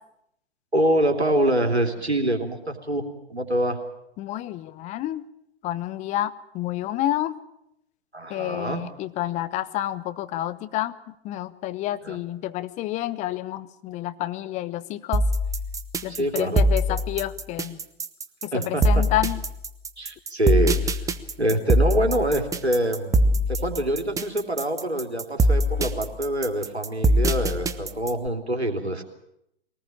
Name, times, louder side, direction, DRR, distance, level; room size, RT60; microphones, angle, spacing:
voice 1, 0.7-3.8 8.1-8.8 12.0-12.2 16.1-17.0 18.5-19.0 20.0-21.0 21.4-29.0, right 1 dB, 90° right, 5 dB, 3.2 m, -25 dB
voice 2, 4.2-5.2 5.6-7.3 8.3-11.0 11.2-15.2 16.0-17.8 18.4-19.4, left 14 dB, 20° left, 13 dB, 0.9 m, -29 dB
sound 1, 15.1-28.3, right 1 dB, 10° right, 1.0 m, -22 dB
22.5 x 19.0 x 8.7 m, 0.79 s
figure-of-eight pair, 115°, 32 cm